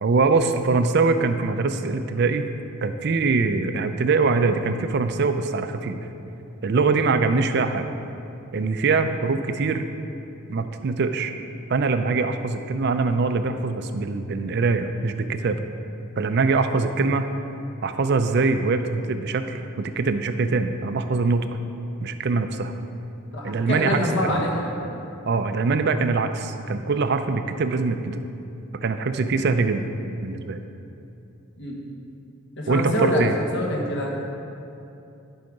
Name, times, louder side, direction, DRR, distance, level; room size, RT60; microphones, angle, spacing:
voice 1, 0.0-2.5 2.8-6.0 6.6-7.9 8.5-9.9 10.5-11.4 11.7-15.6 16.2-17.3 17.8-21.4 22.0-22.7 23.4-24.5 25.3-28.2 28.8-29.8 30.2-30.6 32.7-33.3, right 4 dB, 50° right, 8 dB, 0.4 m, -23 dB
voice 2, 23.3-24.8 31.6-31.8 32.6-34.2, equal, 55° left, -1 dB, 1.4 m, -25 dB
10.5 x 4.8 x 5.3 m, 2.8 s
head